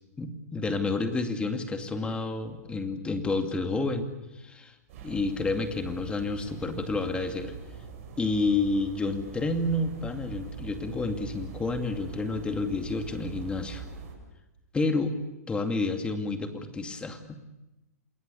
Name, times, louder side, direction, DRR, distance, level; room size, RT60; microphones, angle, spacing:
voice 1, 0.2-4.1 4.4-4.7 5.0-7.5 8.2-13.8 14.7-15.1 15.5-17.4, left 3 dB, 10° left, 6 dB, 2.4 m, -29 dB
sound 1, 4.9-14.1, right 6 dB, 50° right, 7.5 m, -43 dB
28.5 x 21.0 x 7.0 m, 0.97 s
hypercardioid pair, 130°, 9 cm